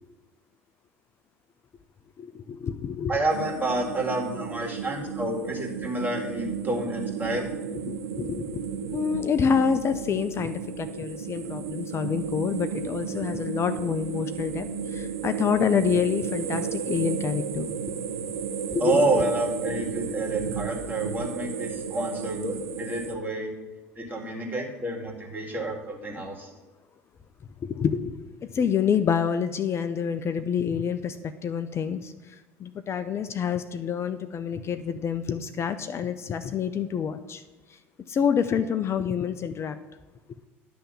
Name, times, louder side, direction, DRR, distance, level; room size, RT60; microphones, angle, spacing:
voice 1, 2.2-3.2 7.9-17.7 18.7-19.1 27.6-32.3 32.6-37.4 38.1-39.8, left 7 dB, 40° left, 9 dB, 0.5 m, -27 dB
voice 2, 3.1-7.5 18.8-23.5 24.0-26.5, right 2 dB, 25° right, 0 dB, 2.1 m, -29 dB
sound 1, 3.3-23.1, right 7 dB, 90° right, 0.5 m, -33 dB
10.0 x 3.4 x 7.0 m, 1.2 s
hypercardioid pair, 70°, 7 cm